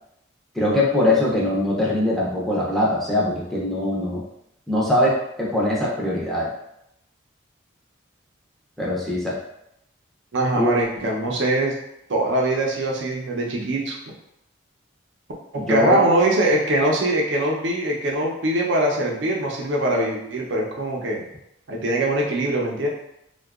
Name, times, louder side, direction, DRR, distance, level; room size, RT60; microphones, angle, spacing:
voice 1, 0.6-4.2 4.7-6.5 8.8-9.4 10.5-10.7 15.6-16.0, left 1 dB, ahead, -5 dB, 0.4 m, -22 dB
voice 2, 10.3-11.8 12.1-14.1 15.5-21.2 21.7-22.9, right 1 dB, 60° right, -1 dB, 0.5 m, -22 dB
2.7 x 2.2 x 2.3 m, 0.81 s
head